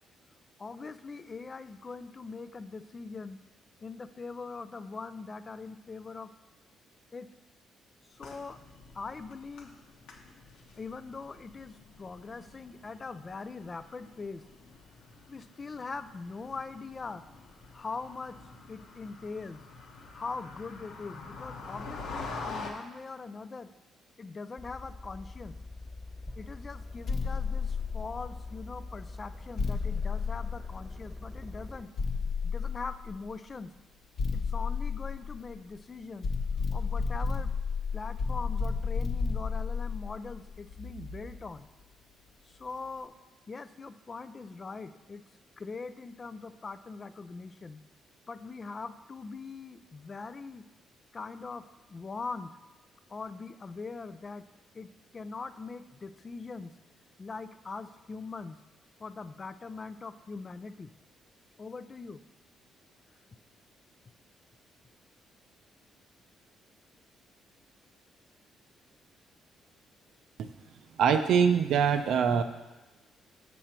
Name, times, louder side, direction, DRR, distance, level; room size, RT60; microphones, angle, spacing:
voice 1, 0.6-3.4 3.8-6.3 7.1-7.3 8.1-8.6 8.9-9.7 10.8-14.4 15.3-17.2 17.7-18.4 18.7-19.6 20.1-23.7 24.2-25.6 26.4-31.9 32.4-33.7 34.3-36.3 36.7-37.5 37.9-41.7 42.5-43.1 43.5-45.2 45.6-47.8 48.3-50.6 51.1-51.6 51.9-52.5 53.1-54.4 54.7-54.9 55.1-56.7 57.2-58.6 59.0-60.9 61.6-62.2, left 4 dB, 35° left, 12 dB, 0.4 m, -41 dB
sound 1, 8.1-22.7, left 3 dB, 85° left, 1.1 m, -46 dB
sound 2, 24.6-31.8, left 2 dB, 15° left, 1.4 m, -44 dB
sound 3, 27.1-28.6 29.6-31.2 32.0-33.3 34.2-35.8 36.2-41.5, left 5 dB, 50° left, 0.8 m, -32 dB
voice 2, 71.0-72.4, right 7 dB, 75° right, 8 dB, 0.5 m, -23 dB
6.7 x 6.2 x 4.4 m, 1.1 s
cardioid pair, 90°, 0 cm